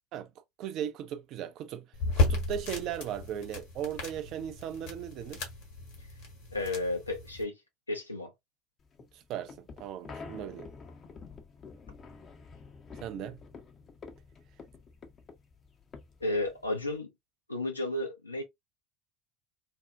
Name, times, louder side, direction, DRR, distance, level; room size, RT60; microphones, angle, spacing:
voice 1, 0.6-1.9 2.2-5.5 9.1-10.7 13.0-13.4, right 9 dB, 50° right, 0.4 m, -37 dB
sound 1, 1.9-7.4, left 3 dB, 60° left, 1.1 m, -34 dB
voice 2, 6.5-7.6 7.9-8.3 16.2-17.1 17.5-18.4, left 2 dB, 90° left, 0.6 m, -32 dB
sound 2, 8.8-17.0, left 4 dB, 35° left, 0.5 m, -49 dB
2.5 x 2.0 x 2.3 m
figure-of-eight pair, 70°, 0 cm